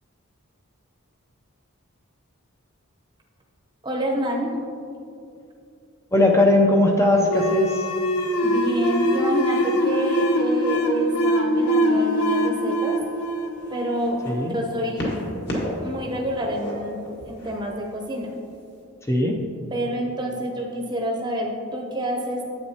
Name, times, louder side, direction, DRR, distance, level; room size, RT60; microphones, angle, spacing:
voice 1, 3.8-4.5 8.4-13.0 13.7-15.1 15.8-17.0 17.2-18.3 19.7-22.4, equal, 20° right, 0 dB, 0.8 m, -28 dB
voice 2, 6.1-7.9 14.3-14.6 19.1-19.5, left 1 dB, 10° left, 1 dB, 0.5 m, -19 dB
sound 1, 7.2-14.5, equal, 80° left, 0.7 m, -23 dB
sound 2, 11.9-12.2 13.0-14.3 14.9-15.9 16.2-17.5 18.4-18.5, equal, 50° left, 1.6 m, -31 dB
9.8 x 8.1 x 2.9 m, 2.6 s
head